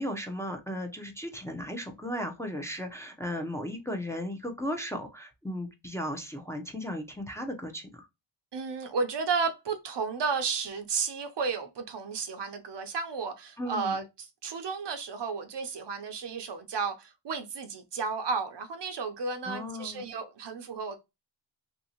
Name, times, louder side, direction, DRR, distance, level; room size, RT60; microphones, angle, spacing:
voice 1, 0.0-8.1 13.6-14.0 19.5-20.0, equal, 5° left, 0.6 m, -36 dB
voice 2, 8.5-21.0, right 5 dB, 60° right, 0.6 m, -33 dB
2.8 x 2.7 x 2.8 m
wide cardioid pair, 70°, 47 cm